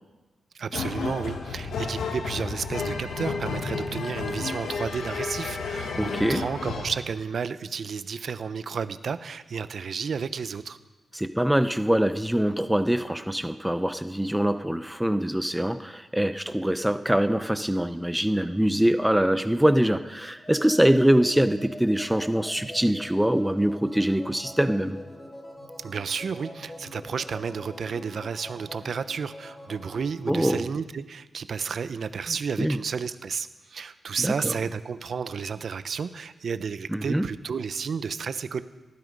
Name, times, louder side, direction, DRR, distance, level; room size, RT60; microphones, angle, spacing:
voice 1, 0.5-10.8 25.8-38.6, right 6 dB, 60° right, 12 dB, 0.9 m, -32 dB
sound 1, 0.7-7.0, left 4 dB, 80° left, 2.0 m, -32 dB
voice 2, 6.0-6.4 11.1-25.0 30.3-30.7 32.3-32.8 34.2-34.6 36.9-37.2, right 1 dB, 5° right, 10 dB, 0.7 m, -24 dB
sound 2, 20.3-30.2, left 1 dB, 25° left, 3.0 m, -44 dB
19.0 x 13.0 x 5.4 m, 1.2 s
cardioid pair, 85°, 0 cm